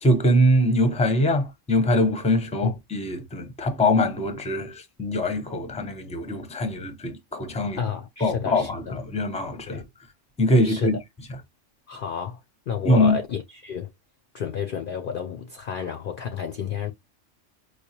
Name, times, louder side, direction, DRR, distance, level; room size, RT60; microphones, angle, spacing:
voice 1, 0.0-7.8 8.2-9.8 10.4-11.0 11.3-11.4 12.8-13.2, left 1 dB, 5° left, 0.6 m, -23 dB
voice 2, 7.8-8.9 9.7-9.8 10.6-10.9 11.9-12.4 12.7-13.9 14.3-16.9, left 7 dB, 60° left, 0.6 m, -31 dB
4.8 x 2.3 x 2.8 m
omnidirectional pair, 1.3 m